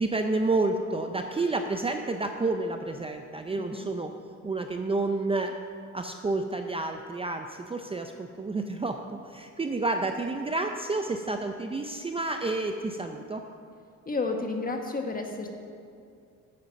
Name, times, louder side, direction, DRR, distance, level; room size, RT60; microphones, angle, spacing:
voice 1, 0.0-4.1 4.4-5.5 5.9-13.4, right 2 dB, 20° right, 5 dB, 0.5 m, -30 dB
voice 2, 3.6-3.9 14.1-15.5, left 3 dB, 30° left, 3 dB, 1.4 m, -31 dB
8.9 x 8.7 x 5.3 m, 2.4 s
cardioid pair, 90°, 30 cm